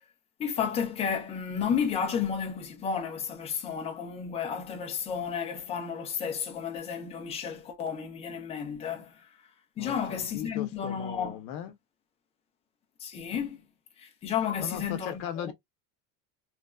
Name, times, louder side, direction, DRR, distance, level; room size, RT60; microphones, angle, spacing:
voice 1, 0.4-9.2 9.8-11.4 13.0-13.6 14.0-15.5, left 7 dB, 20° left, 0.4 m, -32 dB
voice 2, 9.8-11.7 14.6-15.5, left 10 dB, 55° left, 0.8 m, -38 dB
3.1 x 2.2 x 2.2 m
cardioid pair, 175°, 37 cm